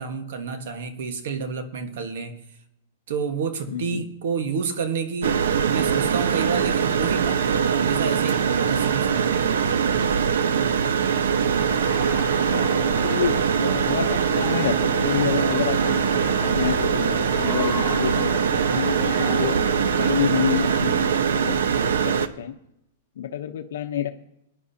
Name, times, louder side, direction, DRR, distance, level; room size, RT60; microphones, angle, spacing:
voice 1, 0.0-2.4 3.1-9.7, right 5 dB, 60° right, 7 dB, 1.4 m, -30 dB
voice 2, 3.7-4.1 12.5-19.6 20.0-21.6 22.0-22.5 23.2-24.1, left 10 dB, 70° left, 6 dB, 0.9 m, -29 dB
sound 1, 5.2-22.3, right 7 dB, 90° right, 0.7 m, -22 dB
sound 2, 11.6-21.2, left 6 dB, 20° left, 3.1 m, -36 dB
20.5 x 11.0 x 2.9 m, 0.80 s
supercardioid pair, 170°, 0 cm